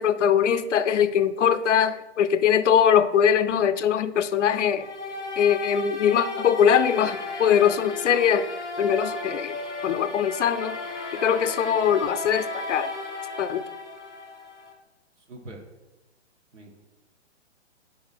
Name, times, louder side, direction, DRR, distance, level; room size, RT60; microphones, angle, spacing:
voice 1, 0.0-4.9 5.4-8.5 8.8-9.6 9.8-10.8 11.1-12.9 13.4-13.6, left 8 dB, 85° left, 12 dB, 0.6 m, -22 dB
sound 1, 4.8-14.7, left 2 dB, 5° right, 0.4 m, -34 dB
voice 2, 15.3-15.6 16.5-16.7, right 1 dB, 85° right, 1 dB, 1.6 m, -42 dB
5.1 x 4.2 x 5.9 m, 1.1 s
hypercardioid pair, 155°, 35 cm